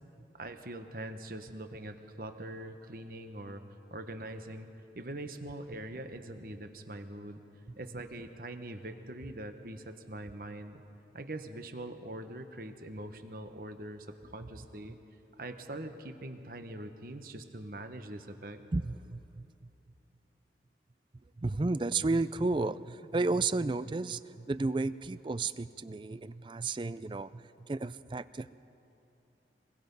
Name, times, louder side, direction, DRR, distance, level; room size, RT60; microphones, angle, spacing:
voice 1, 0.3-3.6 3.9-4.7 4.9-7.4 7.8-10.8 11.1-15.0 15.4-18.6, right 1 dB, 55° right, 7 dB, 1.2 m, -43 dB
voice 2, 18.7-19.5 21.4-28.5, right 3 dB, 25° right, 15 dB, 0.4 m, -32 dB
26.0 x 21.5 x 5.4 m, 2.9 s
head